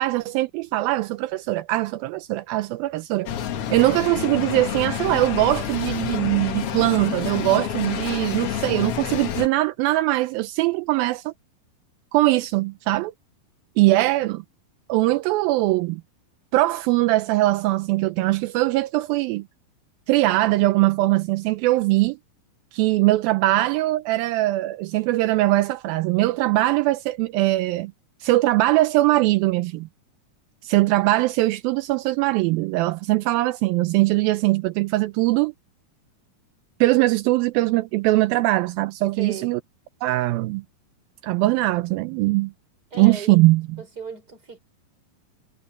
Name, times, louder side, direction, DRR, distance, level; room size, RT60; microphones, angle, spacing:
voice 1, 0.0-3.3 3.7-11.3 12.1-13.1 13.8-14.4 14.9-16.0 16.5-19.4 20.1-22.2 22.7-27.9 28.2-29.9 30.6-35.5 36.8-39.6 40.0-40.6 41.2-42.5 43.0-43.8, right 18 dB, 85° right, 2.4 m, -21 dB
sound 1, 3.3-9.5, left 9 dB, 65° left, 1.5 m, -28 dB
voice 2, 39.2-39.5 42.9-43.5 43.8-44.6, right 4 dB, 25° right, 5.5 m, -36 dB
omnidirectional pair, 4.3 m